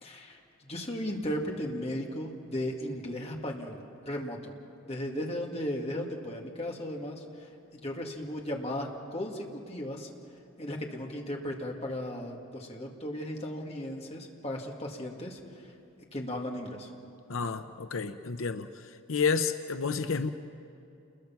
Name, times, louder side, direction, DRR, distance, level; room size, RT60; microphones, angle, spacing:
voice 1, 0.0-4.5 4.8-10.1 10.6-15.7 16.1-16.9, equal, 30° left, 0 dB, 2.3 m, -36 dB
voice 2, 17.3-18.7 19.1-20.3, left 5 dB, 85° left, 9 dB, 0.7 m, -30 dB
29.0 x 21.5 x 5.9 m, 2.7 s
head